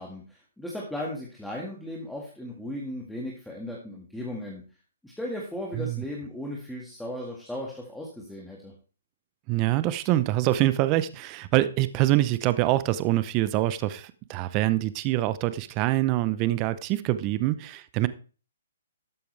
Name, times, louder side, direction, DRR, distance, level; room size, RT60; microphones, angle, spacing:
voice 1, 0.0-4.6 5.0-8.7, left 1 dB, ahead, 1.9 m, -36 dB
voice 2, 9.5-18.1, right 15 dB, 30° right, 0.7 m, -25 dB
12.5 x 8.5 x 3.3 m
hypercardioid pair, 150°, 0 cm